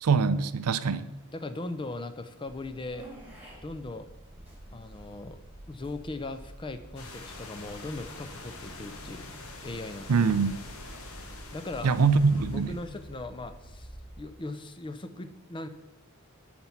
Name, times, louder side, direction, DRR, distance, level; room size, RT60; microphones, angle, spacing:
voice 1, 0.0-1.1 10.1-10.6 11.8-12.8, right 5 dB, 85° right, 13 dB, 0.5 m, -24 dB
voice 2, 1.3-3.1 3.6-4.1 4.7-5.4 5.7-9.3 9.6-10.3 11.5-11.9 12.5-13.9 14.2-15.7, left 2 dB, 20° left, 10 dB, 0.4 m, -39 dB
sound 1, 2.5-14.2, right 1 dB, 5° right, 1.9 m, -48 dB
sound 2, 7.0-13.2, left 3 dB, 70° left, 1.2 m, -46 dB
9.5 x 4.4 x 5.8 m, 1.0 s
head